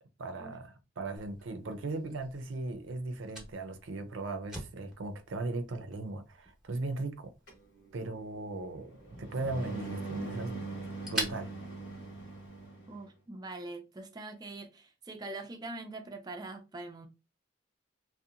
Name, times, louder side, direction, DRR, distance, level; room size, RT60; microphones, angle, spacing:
voice 1, 0.2-7.3 7.9-8.9 9.2-10.6 11.1-11.5, right 2 dB, 85° right, 0.5 m, -38 dB
Fire, 1.1-12.7, right 1 dB, 5° right, 0.7 m, -46 dB
sound 1, 7.5-13.1, right 2 dB, 65° left, 1.1 m, -42 dB
voice 2, 12.9-17.1, right 2 dB, 20° right, 0.3 m, -43 dB
2.7 x 2.1 x 2.4 m
head